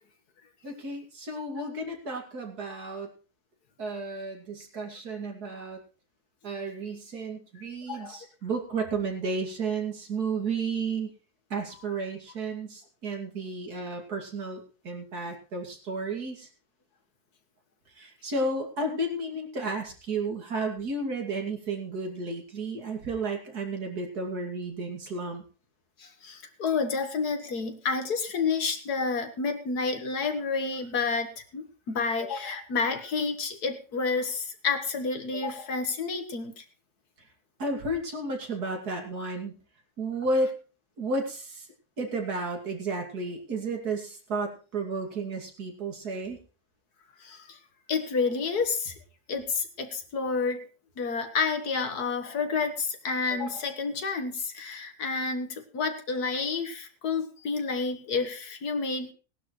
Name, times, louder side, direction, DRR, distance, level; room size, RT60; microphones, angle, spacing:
voice 1, 0.6-3.1 3.8-5.8 6.4-11.1 11.5-16.5 18.0-25.4 37.6-39.6 40.0-40.5 41.0-41.7 42.0-46.4, right 3 dB, 80° right, 2 dB, 3.1 m, -32 dB
voice 2, 7.9-8.2 26.0-36.6 47.2-47.6 47.9-48.9 49.3-50.7 51.0-59.1, left 4 dB, 85° left, 7 dB, 2.0 m, -30 dB
18.5 x 11.5 x 3.2 m, 0.35 s
omnidirectional pair, 1.6 m